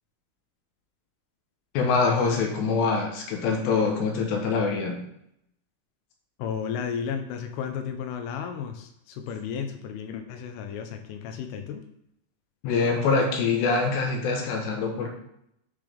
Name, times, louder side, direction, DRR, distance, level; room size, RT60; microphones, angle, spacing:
voice 1, 1.7-5.0 12.6-15.1, left 4 dB, 75° left, 2 dB, 2.9 m, -24 dB
voice 2, 6.4-11.8, left 7 dB, 90° left, 5 dB, 3.3 m, -33 dB
10.0 x 3.9 x 3.4 m, 0.74 s
omnidirectional pair, 5.7 m